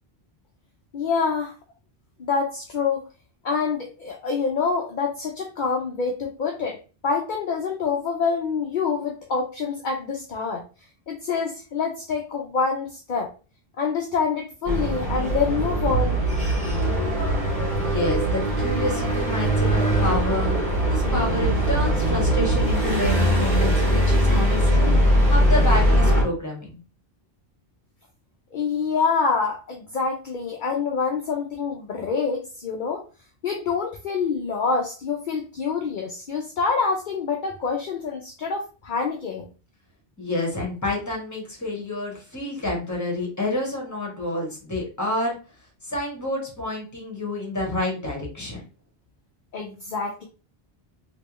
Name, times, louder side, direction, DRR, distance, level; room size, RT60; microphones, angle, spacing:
voice 1, 0.9-1.5 2.2-3.0 3.4-10.6 11.1-13.3 13.8-16.2 28.5-33.0 33.4-39.4 49.5-50.3, left 5 dB, 55° left, 1 dB, 0.7 m, -26 dB
sound 1, 14.6-26.2, equal, 45° right, 2.0 m, -21 dB
voice 2, 17.8-20.6 20.9-26.8 40.2-45.4 45.8-48.6, left 1 dB, 15° left, -1 dB, 1.4 m, -29 dB
3.3 x 2.9 x 3.0 m, 0.33 s
omnidirectional pair, 1.1 m